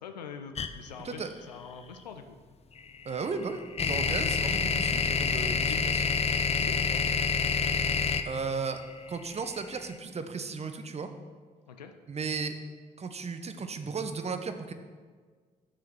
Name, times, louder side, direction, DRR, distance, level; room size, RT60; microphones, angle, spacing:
voice 1, 0.0-2.4 4.2-4.5 5.4-5.8 6.4-7.0 11.7-11.9, left 6 dB, 80° left, 7 dB, 0.5 m, -45 dB
sound 1, 0.6-0.7 2.8-9.8, left 5 dB, 30° left, 0.6 m, -27 dB
voice 2, 3.0-6.0 8.2-8.8 9.1-11.1 12.1-12.6 13.0-14.7, right 4 dB, 30° right, 8 dB, 0.8 m, -35 dB
6.5 x 5.8 x 6.2 m, 1.5 s
figure-of-eight pair, 40°, 21 cm